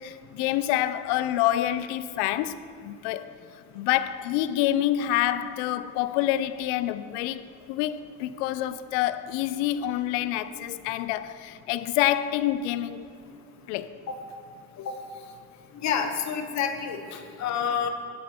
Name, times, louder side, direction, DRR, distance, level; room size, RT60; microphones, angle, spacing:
voice 1, 0.0-3.4 3.7-13.0 13.7-14.0, left 13 dB, 85° left, 0.5 m, -27 dB
voice 2, 15.8-17.9, left 7 dB, 50° left, 1.0 m, -28 dB
16.5 x 8.4 x 2.9 m
supercardioid pair, 95°, 35 cm